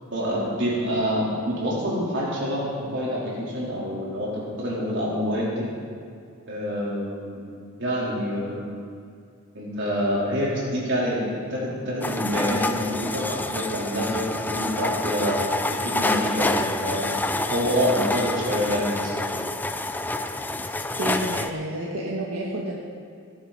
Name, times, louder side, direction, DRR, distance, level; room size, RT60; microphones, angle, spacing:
voice 1, 0.1-5.7 6.5-7.4 7.8-8.6 9.5-17.2 17.5-19.3, equal, 55° right, -6 dB, 4.1 m, -27 dB
sound 1, 12.0-21.5, left 2 dB, 10° left, 0.4 m, -28 dB
voice 2, 21.0-22.8, right 1 dB, 80° right, -3 dB, 1.6 m, -29 dB
18.0 x 11.0 x 4.3 m, 2.4 s
head